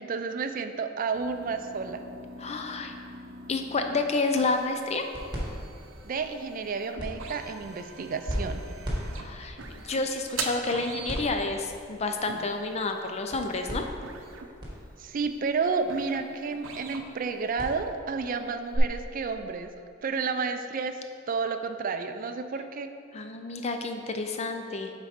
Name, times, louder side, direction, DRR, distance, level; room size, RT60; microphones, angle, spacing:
voice 1, 0.0-2.0 6.0-8.6 15.0-19.7 20.0-21.0 21.3-22.9, right 5 dB, 45° right, 7 dB, 0.4 m, -31 dB
sound 1, 1.1-17.5, right 4 dB, 85° right, 0.6 m, -43 dB
voice 2, 2.4-2.9 3.5-5.0 9.2-13.9 23.1-24.9, left 3 dB, 35° left, 5 dB, 0.5 m, -30 dB
sound 2, 4.3-18.8, equal, 20° right, 1.5 m, -40 dB
7.3 x 4.1 x 5.0 m, 2.4 s
head